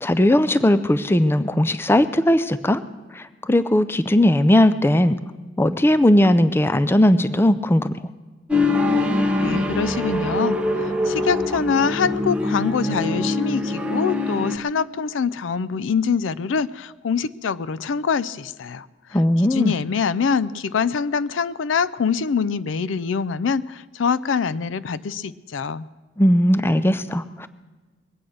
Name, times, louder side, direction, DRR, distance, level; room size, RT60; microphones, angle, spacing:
voice 1, 0.0-2.8 3.1-5.2 5.6-8.0 19.1-19.7 26.2-27.5, left 1 dB, 10° left, 12 dB, 0.4 m, -18 dB
sound 1, 8.5-14.6, left 2 dB, 5° right, 1.0 m, -23 dB
voice 2, 9.4-18.9 19.5-25.9, left 6 dB, 75° left, 17 dB, 0.4 m, -24 dB
22.0 x 8.8 x 6.3 m, 1.3 s
head